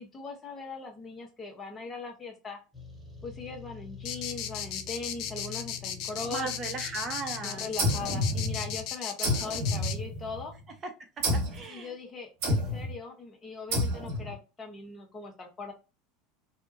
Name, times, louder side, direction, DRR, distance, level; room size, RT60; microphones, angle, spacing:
voice 1, 0.0-2.6 3.2-6.5 7.4-10.5 11.7-15.7, left 4 dB, 25° left, 2 dB, 1.1 m, -40 dB
sound 1, 2.7-8.6, left 5 dB, 5° left, 1.2 m, -45 dB
sound 2, 4.0-9.9, left 9 dB, 55° left, 0.4 m, -35 dB
voice 2, 6.3-7.7 10.8-10.9 11.2-11.9, right 4 dB, 35° right, 6 dB, 0.8 m, -37 dB
sound 3, 7.8-8.8 9.2-10.5 11.2-11.7 12.4-13.0 13.7-14.3, left 1 dB, 60° right, 1.1 m, -29 dB
2.7 x 2.3 x 2.5 m, 0.30 s
hypercardioid pair, 80°, 0 cm